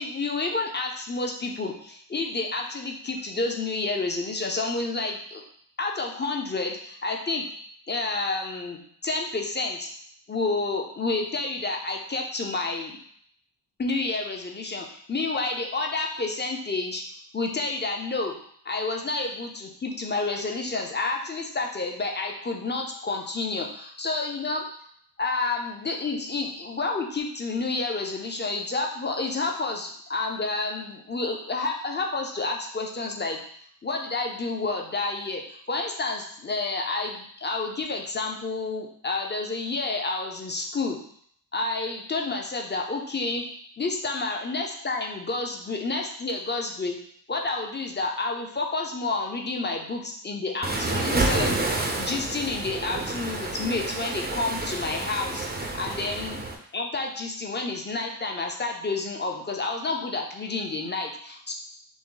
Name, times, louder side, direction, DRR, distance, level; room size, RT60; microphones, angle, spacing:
voice 1, 0.0-5.4 5.8-7.5 7.9-9.9 10.3-13.0 13.8-17.0 17.3-18.4 18.6-24.7 25.2-33.4 33.8-41.0 41.5-43.4 43.8-47.0 47.3-51.6 51.9-55.5 55.7-56.4 56.7-61.5, left 3 dB, 25° left, 2 dB, 0.6 m, -29 dB
Waves surf, 50.6-56.6, right 2 dB, 25° right, 0.5 m, -29 dB
6.0 x 2.1 x 3.8 m, 0.63 s
wide cardioid pair, 155°, 43 cm